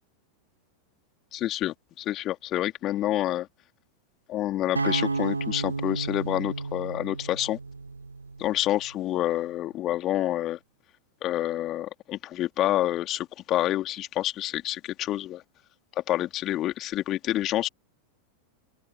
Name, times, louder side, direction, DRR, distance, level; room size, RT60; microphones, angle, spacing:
voice 1, 1.3-3.5 4.3-7.6 8.4-10.6 11.2-15.4 16.0-17.7, left 14 dB, 35° left, 2.7 m, -28 dB
sound 1, 4.8-8.9, right 3 dB, 80° right, 7.0 m, -32 dB
open air
figure-of-eight pair, 90°, 0 cm